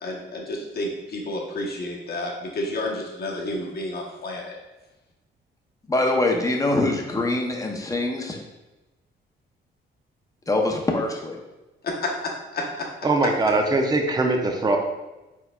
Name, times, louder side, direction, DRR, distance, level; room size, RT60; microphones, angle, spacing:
voice 1, 0.0-4.6 11.8-12.1 12.5-12.9, left 1 dB, 50° left, -2 dB, 1.1 m, -30 dB
voice 2, 5.9-8.4 10.5-11.4, left 2 dB, 15° left, 1 dB, 0.8 m, -24 dB
voice 3, 13.0-14.8, right 2 dB, 20° right, 3 dB, 0.6 m, -21 dB
4.5 x 4.1 x 2.4 m, 1.0 s
cardioid pair, 90°, 20 cm